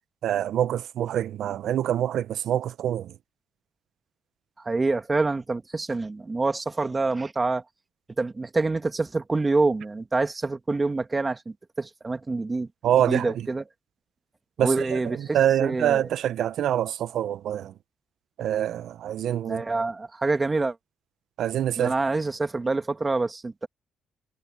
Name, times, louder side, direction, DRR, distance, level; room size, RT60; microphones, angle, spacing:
voice 1, 0.2-3.2 12.8-13.5 14.6-17.7 18.4-19.7 21.4-21.9, right 10 dB, 75° right, 0.8 m, -25 dB
voice 2, 4.6-7.6 8.2-12.7 13.0-13.6 14.6-16.0 19.5-20.8 21.8-23.7, right 3 dB, 25° right, 2.2 m, -26 dB
cardioid pair, 90°, 0 cm